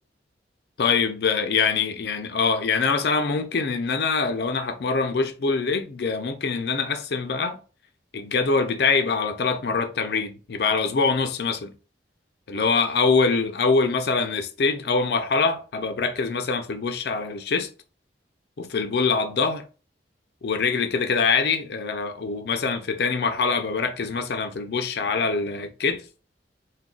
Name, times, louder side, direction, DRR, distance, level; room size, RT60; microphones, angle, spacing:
voice 1, 0.8-7.6 8.1-11.7 12.5-17.7 18.6-19.6 20.4-26.0, left 4 dB, 60° left, 0.4 m, -24 dB
2.3 x 2.3 x 3.7 m
head